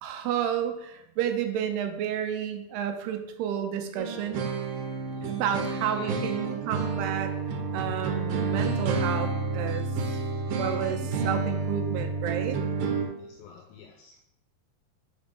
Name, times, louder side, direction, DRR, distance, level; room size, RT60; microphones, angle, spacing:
voice 1, 0.0-4.4 5.2-9.9 10.6-12.6, right 9 dB, 90° right, 7 dB, 2.7 m, -31 dB
sound 1, 4.0-13.1, right 4 dB, 70° right, 2.3 m, -30 dB
voice 2, 5.1-5.4 5.9-6.3 7.5-7.9 12.7-14.2, left 8 dB, 85° left, 3 dB, 2.0 m, -47 dB
5.3 x 5.2 x 5.2 m, 0.80 s
omnidirectional pair, 4.7 m